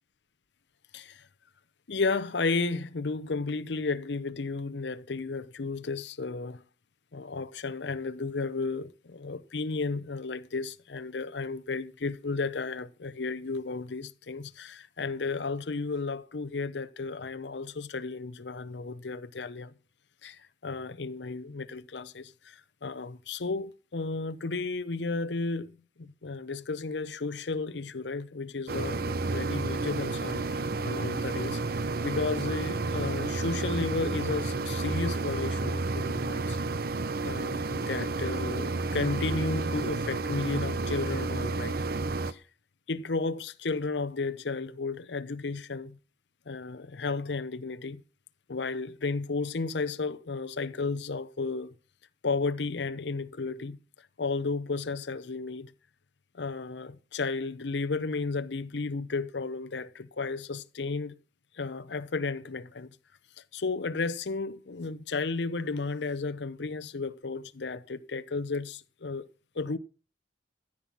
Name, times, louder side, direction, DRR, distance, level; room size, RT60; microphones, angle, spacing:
voice 1, 0.9-1.2 1.9-6.6 7.1-19.7 20.2-36.6 37.2-41.8 42.3-42.4 42.9-46.0 46.5-48.0 48.5-51.7 52.2-53.8 54.2-55.7 56.3-61.1 61.5-62.9 63.5-69.3 69.5-69.8, left 3 dB, 70° left, 0.7 m, -33 dB
sound 1, 28.7-42.3, right 3 dB, 55° right, 0.7 m, -31 dB
14.5 x 8.7 x 6.0 m
head